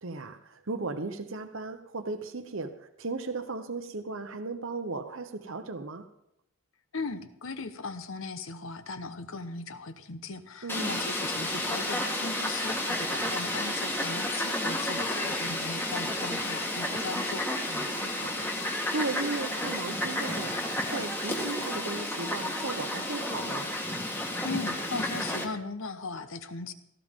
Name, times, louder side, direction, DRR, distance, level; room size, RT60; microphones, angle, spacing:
voice 1, 0.0-6.1 10.6-10.9 17.7-23.7, right 3 dB, 60° right, 1.0 m, -36 dB
voice 2, 6.9-17.4 24.4-26.7, left 3 dB, 65° left, 1.1 m, -38 dB
Fowl, 10.7-25.4, left 1 dB, 10° left, 1.6 m, -31 dB
17.0 x 14.5 x 3.7 m
head